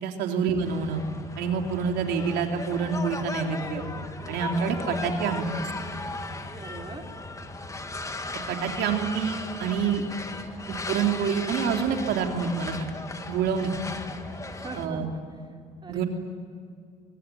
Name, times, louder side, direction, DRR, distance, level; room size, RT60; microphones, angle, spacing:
voice 1, 0.0-1.1 1.4-3.9 4.3-5.5 8.5-10.0 10.7-12.9 13.3-13.7 14.8-15.1 15.9-16.0, right 6 dB, 80° right, 3 dB, 3.5 m, -27 dB
sound 1, 0.6-14.9, left 2 dB, 20° left, 1.9 m, -36 dB
voice 2, 6.5-7.0 14.5-16.0, right 4 dB, 25° right, 3 dB, 3.6 m, -42 dB
25.0 x 24.0 x 9.4 m, 2.2 s
cardioid pair, 110°, 17 cm